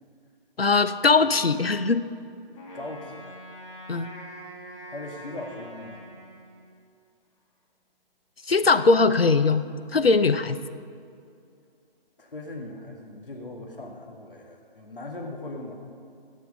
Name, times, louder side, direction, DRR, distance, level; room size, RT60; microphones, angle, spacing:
voice 1, 0.6-2.0 3.9-4.1 8.5-9.6 9.9-10.6, left 4 dB, 80° left, 11 dB, 0.7 m, -20 dB
Wind instrument woodwind instrument, 2.5-6.9, equal, 35° left, 2.1 m, -44 dB
voice 2, 2.7-3.5 4.9-6.0 12.2-15.7, left 2 dB, 65° left, 0 dB, 1.8 m, -39 dB
16.5 x 6.6 x 5.2 m, 2.4 s
figure-of-eight pair, 145°, 30 cm